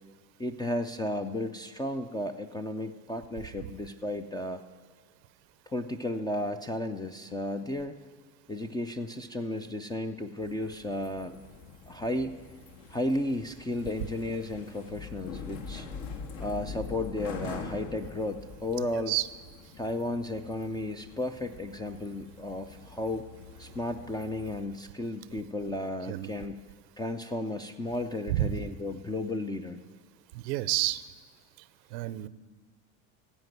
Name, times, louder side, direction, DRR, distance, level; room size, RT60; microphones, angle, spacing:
voice 1, 0.4-4.6 5.7-8.0 8.5-11.4 11.9-12.4 12.9-15.9 16.4-19.1 19.8-23.2 23.6-26.6 27.0-29.8, left 1 dB, 10° left, 8 dB, 0.3 m, -33 dB
sound 1, 10.4-24.6, left 4 dB, 60° left, 1.7 m, -44 dB
voice 2, 30.3-31.0 31.9-32.3, right 16 dB, 85° right, 17 dB, 0.8 m, -29 dB
15.5 x 5.3 x 9.1 m, 1.5 s
supercardioid pair, 105°, 49 cm